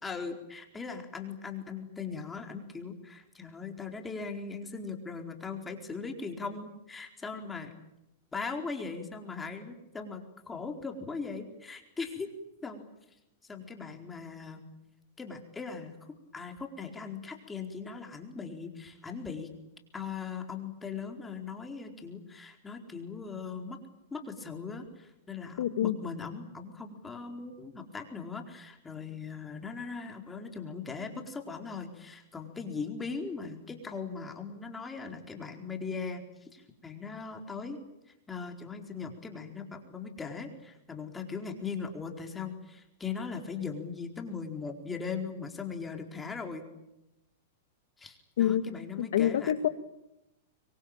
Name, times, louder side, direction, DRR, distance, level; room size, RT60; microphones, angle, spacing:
voice 1, 0.0-7.7 8.3-12.3 12.6-12.9 13.4-14.7 15.2-15.9 16.3-19.5 19.9-23.8 24.1-37.8 38.3-46.7 48.0-49.5, left 5 dB, 10° left, 3 dB, 4.4 m, -39 dB
voice 2, 25.6-25.9 48.4-49.7, left 11 dB, 75° left, 11 dB, 2.0 m, -27 dB
26.0 x 23.5 x 9.0 m, 0.88 s
hypercardioid pair, 135°, 0 cm